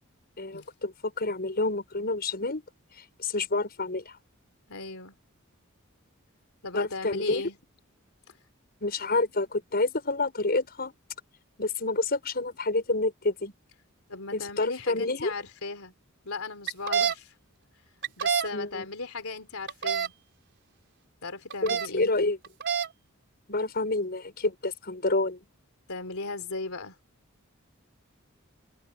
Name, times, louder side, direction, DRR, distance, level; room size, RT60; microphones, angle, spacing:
voice 1, 0.4-2.6 3.0-4.2 6.7-7.4 8.8-10.9 11.6-13.5 14.3-15.3 18.5-18.9 21.6-22.4 23.5-25.4, left 2 dB, 45° left, 5.8 m, -28 dB
voice 2, 4.7-5.2 6.6-7.6 8.3-8.4 14.1-15.9 16.2-17.4 18.2-20.1 21.2-22.4 25.9-27.0, left 3 dB, 85° left, 3.4 m, -37 dB
sound 1, 16.7-17.1 18.0-18.5 19.7-20.1 21.5-21.9 22.4-22.9, right 7 dB, 55° right, 4.7 m, -26 dB
head